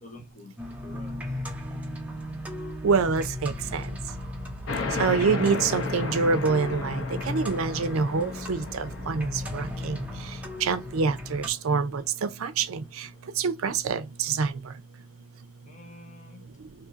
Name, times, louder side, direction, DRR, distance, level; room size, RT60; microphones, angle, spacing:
voice 1, 0.0-1.5 15.6-16.4, left 2 dB, 35° left, 0.8 m, -49 dB
sound 1, 0.6-11.5, left 1 dB, 5° right, 0.6 m, -36 dB
voice 2, 2.8-3.9 5.0-10.0 10.6-13.1 13.4-14.5, right 5 dB, 75° right, 0.5 m, -26 dB
sound 2, 4.7-11.8, left 4 dB, 65° left, 0.7 m, -35 dB
2.7 x 2.6 x 3.7 m
head